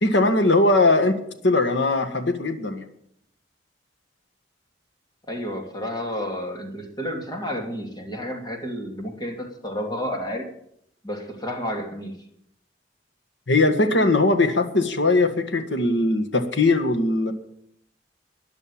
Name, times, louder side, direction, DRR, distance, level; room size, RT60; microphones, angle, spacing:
voice 1, 0.0-1.2 1.4-2.9 13.5-17.3, left 2 dB, 75° left, 8 dB, 1.7 m, -20 dB
voice 2, 5.3-10.4 11.0-12.1, equal, 25° left, 2 dB, 2.8 m, -31 dB
13.5 x 10.5 x 8.7 m, 0.72 s
head